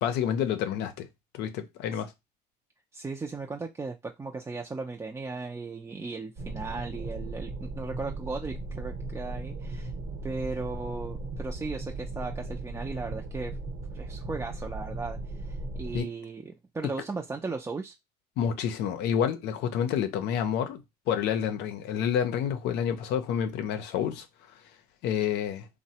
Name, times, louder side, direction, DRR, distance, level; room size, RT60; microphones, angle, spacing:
voice 1, 0.0-1.1 1.3-2.1 15.9-16.1 18.4-20.8 21.1-24.3 25.0-25.7, left 8 dB, 85° left, 0.5 m, -28 dB
voice 2, 2.9-9.9 10.2-13.6 13.9-17.9, right 3 dB, 15° right, 0.4 m, -37 dB
sound 1, 6.4-16.0, right 2 dB, 70° right, 0.9 m, -37 dB
3.1 x 2.1 x 2.8 m
cardioid pair, 110°, 17 cm